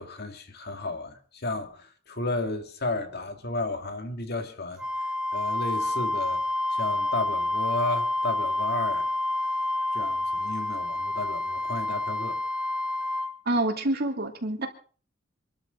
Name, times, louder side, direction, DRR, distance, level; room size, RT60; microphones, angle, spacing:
voice 1, 0.0-4.8 5.3-6.4 6.7-9.1 9.9-12.4, left 2 dB, 55° left, 2.1 m, -33 dB
Wind instrument woodwind instrument, 4.8-13.4, left 2 dB, 5° right, 0.8 m, -28 dB
voice 2, 13.5-14.7, right 1 dB, 50° right, 2.6 m, -27 dB
26.0 x 13.0 x 3.8 m
head